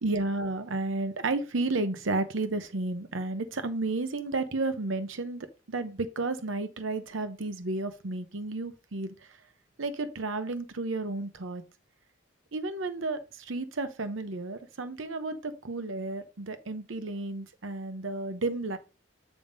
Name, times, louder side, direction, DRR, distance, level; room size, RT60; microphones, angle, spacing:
voice 1, 0.0-9.4 9.8-11.6 12.5-18.8, right 2 dB, 80° right, 0.8 m, -32 dB
8.7 x 3.6 x 5.2 m
head